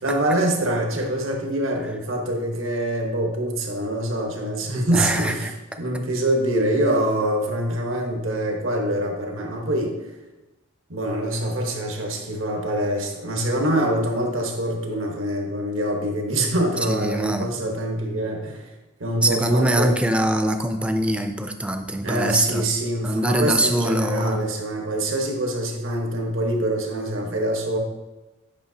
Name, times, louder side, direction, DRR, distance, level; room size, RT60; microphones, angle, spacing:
voice 1, 0.0-5.5 5.8-9.9 10.9-18.7 19.0-19.9 22.0-27.8, right 1 dB, 75° right, 1 dB, 1.2 m, -25 dB
voice 2, 4.9-5.5 16.9-17.5 19.2-22.6 23.0-24.4, right 1 dB, 5° right, 6 dB, 0.4 m, -23 dB
8.7 x 5.6 x 2.8 m, 1.1 s
head